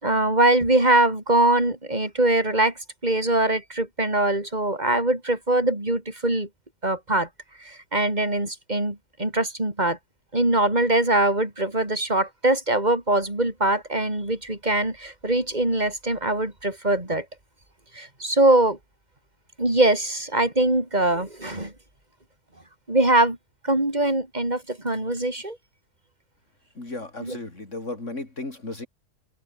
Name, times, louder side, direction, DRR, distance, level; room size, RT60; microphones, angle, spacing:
voice 1, 0.0-2.7 3.0-6.5 6.8-7.3 7.6-10.0 10.3-17.3 17.9-18.8 19.6-21.7 22.9-23.4 23.6-25.6 27.2-27.4, right 1 dB, 25° right, 5.5 m, -22 dB
voice 2, 26.7-28.9, left 2 dB, 50° left, 4.9 m, -35 dB
open air
omnidirectional pair, 1.6 m